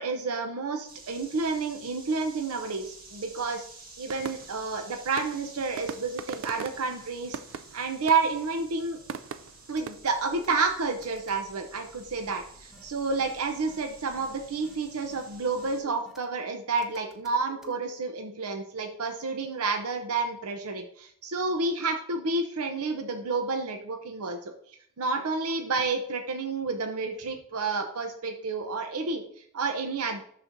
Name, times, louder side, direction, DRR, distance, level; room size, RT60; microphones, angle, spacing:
voice 1, 0.0-3.6 4.0-7.4 7.7-9.0 9.7-24.5 25.0-30.2, right 4 dB, 90° right, 5 dB, 0.7 m, -30 dB
sound 1, 0.9-15.8, right 3 dB, 40° right, 1.7 m, -50 dB
sound 2, 4.1-9.9, right 6 dB, 60° right, 0.4 m, -40 dB
sound 3, 9.8-10.6 11.0-11.4 12.7-12.9 13.2-13.3 13.7-13.8 14.2-14.3 14.6-14.8 15.1-15.2 15.6-16.3 16.8-17.7, left 4 dB, ahead, 0.8 m, -50 dB
12.0 x 4.2 x 2.6 m, 0.63 s
head